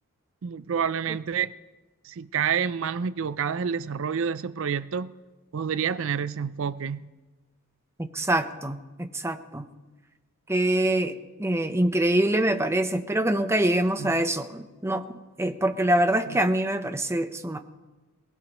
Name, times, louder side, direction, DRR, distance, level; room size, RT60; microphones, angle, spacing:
voice 1, 0.4-1.5 2.0-5.1 5.5-7.0 14.0-14.3 16.3-16.4, right 7 dB, 60° right, 0.5 m, -28 dB
voice 2, 8.0-9.6 10.5-11.1 11.4-15.0 15.4-17.6, right 1 dB, 10° right, 0.7 m, -25 dB
22.5 x 19.5 x 3.1 m
head